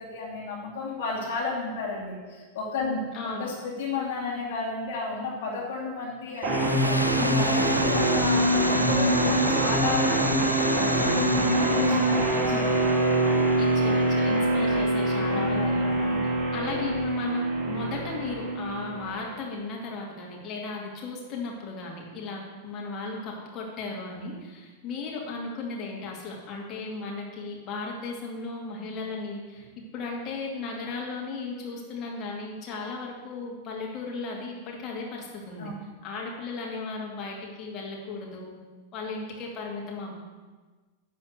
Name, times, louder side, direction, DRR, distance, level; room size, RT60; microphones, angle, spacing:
voice 1, 0.0-3.0 3.4-6.6 6.8-7.0 7.3-10.3 10.7-11.1 11.4-12.9 15.3-16.2 24.1-24.3 35.6-35.7, left 3 dB, 55° left, -4 dB, 2.6 m, -33 dB
voice 2, 3.1-3.5 7.1-7.7 8.3-8.6 12.4-12.7 13.6-16.1 16.5-29.7 29.9-35.7 36.0-38.6 38.9-40.2, left 3 dB, 35° left, -2 dB, 2.5 m, -36 dB
sound 1, 6.4-19.4, right 1 dB, 35° right, 2.1 m, -24 dB
sound 2, 6.4-14.9, equal, 90° right, 0.4 m, -32 dB
11.0 x 4.2 x 8.0 m, 1.3 s
figure-of-eight pair, 90°, 0 cm